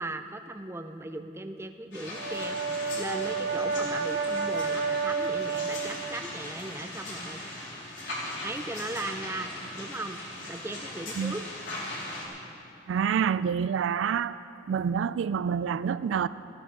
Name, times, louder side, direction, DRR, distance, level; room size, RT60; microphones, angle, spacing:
voice 1, 0.0-7.4 8.4-9.5 9.8-10.2 10.5-11.4, right 2 dB, 15° right, 0.5 m, -38 dB
sound 1, 1.9-12.3, left 1 dB, 70° left, 3.3 m, -39 dB
Brass instrument, 2.0-6.2, right 4 dB, 60° right, 1.1 m, -30 dB
voice 2, 12.9-14.4 14.7-16.3, right 7 dB, 75° right, 0.3 m, -27 dB
16.0 x 14.5 x 3.8 m
head